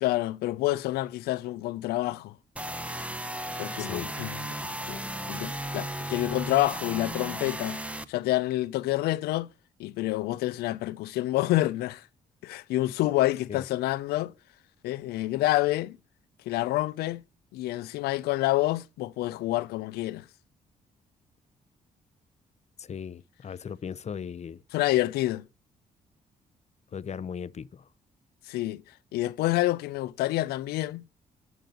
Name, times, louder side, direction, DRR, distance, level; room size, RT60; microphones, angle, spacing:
voice 1, 0.0-2.4 3.6-4.5 4.9-7.8 8.1-9.5 9.8-12.0 12.4-14.3 14.8-16.0 16.5-17.2 17.5-20.2 24.7-25.5 28.5-28.8 29.1-31.0, left 17 dB, 80° left, 0.5 m, -28 dB
sound 1, 2.6-8.0, right 1 dB, 10° right, 0.9 m, -35 dB
voice 2, 3.8-4.1 13.5-13.6 22.8-24.6 26.9-27.8, left 7 dB, 45° left, 0.7 m, -37 dB
11.0 x 3.8 x 7.5 m
hypercardioid pair, 50°, 16 cm